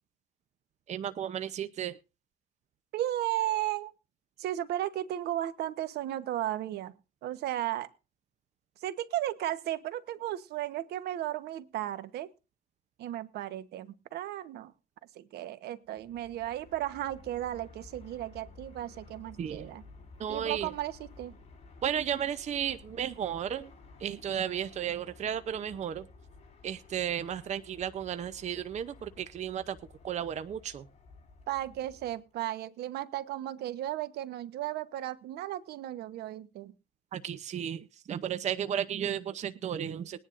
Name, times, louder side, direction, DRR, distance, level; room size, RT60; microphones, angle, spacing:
voice 1, 0.9-1.9 19.4-19.7 20.2-20.7 21.8-23.7 24.0-26.1 26.6-29.8 30.0-30.8 37.1-40.2, right 9 dB, 45° right, 12 dB, 0.7 m, -34 dB
voice 2, 2.9-3.9 4.4-6.9 7.2-7.9 8.8-12.3 13.0-14.7 15.1-19.8 20.3-21.3 31.5-36.7, right 13 dB, 75° right, 13 dB, 1.1 m, -35 dB
Fixed-wing aircraft airplane, 15.9-32.3, left 3 dB, 40° left, 5.2 m, -54 dB
20.5 x 10.0 x 2.6 m, 0.29 s
cardioid pair, 110°, 17 cm